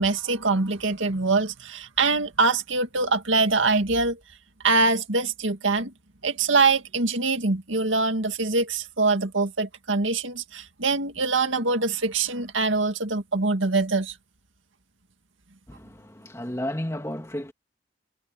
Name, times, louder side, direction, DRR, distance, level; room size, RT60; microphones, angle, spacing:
voice 1, 0.0-4.2 4.6-5.9 6.2-14.1, right 3 dB, 80° right, 2.1 m, -24 dB
voice 2, 15.7-17.5, left 1 dB, 15° left, 2.3 m, -32 dB
head